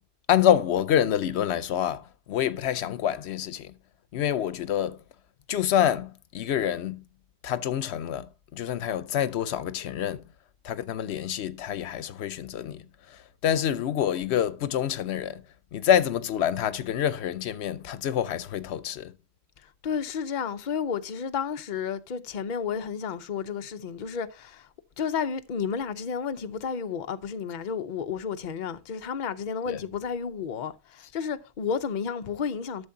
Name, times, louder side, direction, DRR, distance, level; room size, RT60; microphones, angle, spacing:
voice 1, 0.3-3.7 4.1-5.0 5.5-7.0 7.4-10.2 10.6-15.4 15.7-19.1 29.7-29.8, left 10 dB, 90° left, 0.9 m, -27 dB
voice 2, 19.6-24.7 25.0-32.9, left 6 dB, 50° left, 0.8 m, -32 dB
12.0 x 7.0 x 2.7 m
omnidirectional pair, 1.1 m